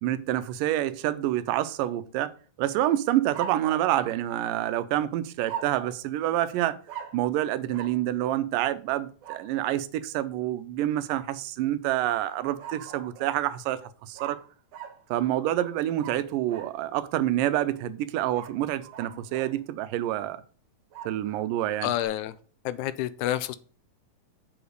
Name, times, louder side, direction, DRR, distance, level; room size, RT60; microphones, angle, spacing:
voice 1, 0.0-2.3 2.6-6.8 7.1-14.4 15.1-20.4 21.1-21.9, right 13 dB, 85° right, 2.3 m, -27 dB
sound 1, 3.3-4.9 5.5-6.0 6.9-7.3 7.7-8.0 9.2-9.8 12.2-13.4 14.1-16.8 18.3-19.6 20.9-22.1, right 9 dB, 65° right, 2.5 m, -42 dB
voice 2, 21.8-22.3 22.6-23.6, left 13 dB, 80° left, 1.8 m, -28 dB
7.1 x 5.0 x 6.4 m
omnidirectional pair, 3.8 m